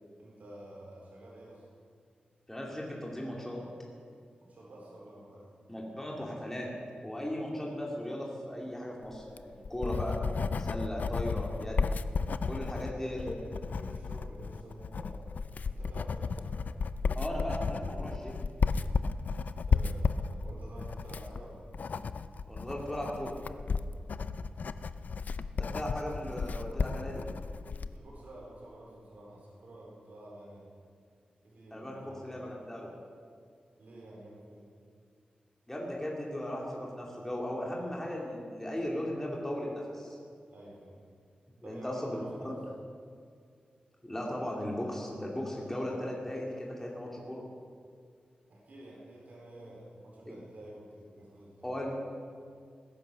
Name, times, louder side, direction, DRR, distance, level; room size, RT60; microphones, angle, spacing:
voice 1, 0.2-1.7 4.4-5.5 12.5-13.3 13.7-15.3 15.7-16.7 19.7-21.7 24.2-24.5 27.9-30.7 31.4-32.3 33.8-34.7 40.5-41.0 41.6-42.5 48.5-51.7, right 1 dB, 65° right, -4 dB, 4.5 m, -49 dB
voice 2, 2.5-3.6 5.7-6.7 7.0-10.2 10.6-11.9 12.4-13.5 17.1-18.4 22.5-23.3 25.6-27.2 31.7-32.9 35.7-40.2 41.6-42.5 44.0-47.4 51.6-52.0, equal, 10° left, -3 dB, 2.6 m, -37 dB
Writing, 9.2-28.0, left 5 dB, 65° left, 0.5 m, -33 dB
20.5 x 10.5 x 6.4 m, 2.2 s
wide cardioid pair, 95°, 3 cm